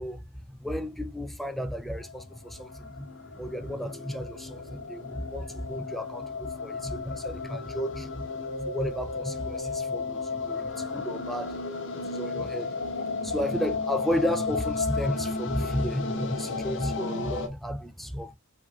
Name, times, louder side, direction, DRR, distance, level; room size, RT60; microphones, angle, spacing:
voice 1, 0.0-11.6 12.0-18.4, equal, ahead, 0.3 m, -33 dB
sound 1, 2.0-17.5, left 3 dB, 60° left, 0.5 m, -34 dB
4.6 x 2.7 x 2.3 m
head